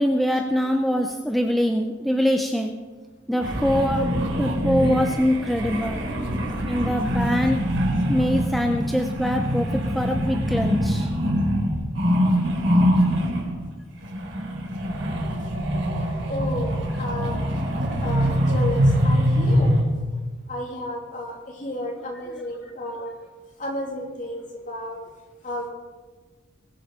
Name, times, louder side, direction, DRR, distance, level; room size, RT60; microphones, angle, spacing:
voice 1, 0.0-2.7 3.3-6.0 6.7-7.6 8.1-11.1, equal, ahead, 3 dB, 0.6 m, -23 dB
sound 1, 3.4-13.6 14.0-19.8, equal, 70° right, 4.1 m, -23 dB
voice 2, 16.3-17.4 18.0-19.8 20.5-23.1 23.6-25.0 25.4-25.7, left 1 dB, 40° left, 0 dB, 2.9 m, -32 dB
21.0 x 7.3 x 5.5 m, 1.3 s
head